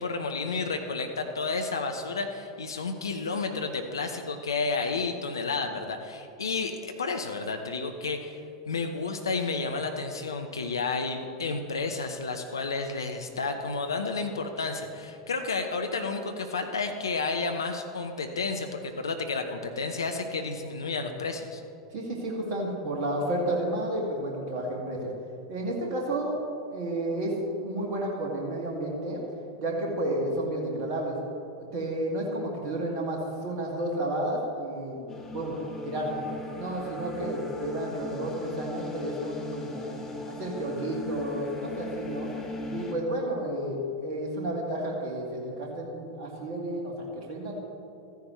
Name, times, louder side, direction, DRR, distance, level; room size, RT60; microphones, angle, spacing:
voice 1, 0.0-21.6, left 4 dB, 75° left, 5 dB, 0.8 m, -31 dB
voice 2, 21.9-25.1 25.5-26.4 26.7-27.3 27.6-29.2 29.6-31.2 31.7-35.0 35.3-36.2 36.6-39.9 40.3-42.3 42.7-47.6, right 1 dB, 45° right, -2 dB, 2.3 m, -31 dB
sound 1, 35.1-42.9, left 2 dB, 20° left, 1.2 m, -38 dB
14.0 x 10.5 x 3.2 m, 2.5 s
figure-of-eight pair, 85°, 2 cm